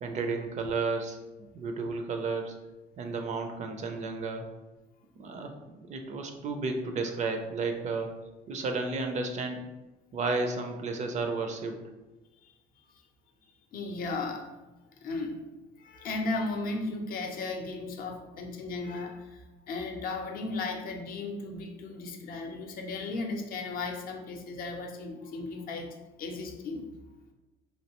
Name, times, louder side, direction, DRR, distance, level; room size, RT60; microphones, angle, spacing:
voice 1, 0.0-2.5 3.0-4.5 5.2-8.1 8.5-9.6 10.1-11.8, right 3 dB, 45° right, 5 dB, 0.4 m, -32 dB
voice 2, 13.7-14.5 15.0-15.4 15.8-26.9, left 3 dB, 60° left, 3 dB, 0.5 m, -35 dB
3.1 x 2.6 x 2.9 m, 1.1 s
cardioid pair, 110°, 17 cm